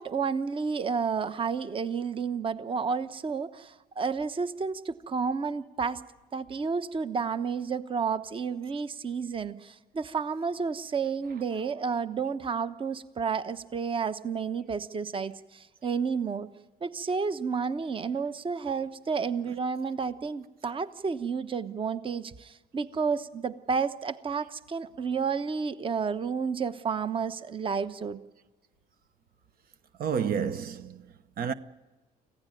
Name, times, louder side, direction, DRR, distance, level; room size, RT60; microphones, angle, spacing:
voice 1, 0.0-6.0 6.3-16.5 16.8-28.2, right 5 dB, 30° right, 1.0 m, -31 dB
voice 2, 30.0-31.5, right 7 dB, 60° right, 1.0 m, -30 dB
26.0 x 16.0 x 9.1 m
cardioid pair, 110°, 17 cm